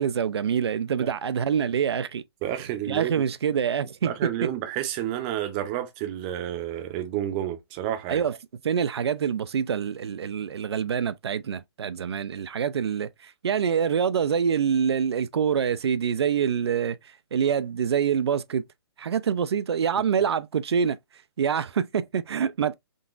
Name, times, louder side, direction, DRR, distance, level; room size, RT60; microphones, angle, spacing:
voice 1, 0.0-2.2 2.9-4.5 8.1-8.4 8.6-17.0 17.3-18.6 19.0-21.0 21.4-22.7, right 7 dB, 90° right, 0.4 m, -25 dB
voice 2, 2.4-3.1 4.0-8.2, right 12 dB, 20° right, 0.5 m, -30 dB
3.7 x 2.4 x 2.4 m
hypercardioid pair, 160°, 13 cm